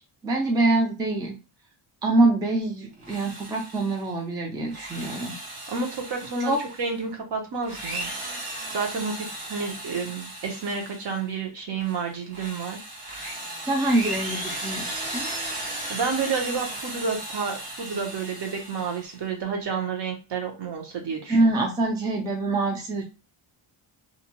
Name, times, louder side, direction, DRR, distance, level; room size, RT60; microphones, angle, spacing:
voice 1, 0.2-1.3 2.0-5.3 6.4-6.6 13.6-15.3 21.3-23.0, right 2 dB, 10° right, 0 dB, 0.3 m, -24 dB
Drill, 2.9-4.1 4.6-7.0 7.6-11.3 11.8-19.2, right 1 dB, 85° right, 1.0 m, -36 dB
voice 2, 5.7-8.1 8.7-12.8 15.9-21.5, right 5 dB, 55° right, 1 dB, 0.9 m, -30 dB
2.6 x 2.1 x 2.9 m, 0.30 s
wide cardioid pair, 150°, 49 cm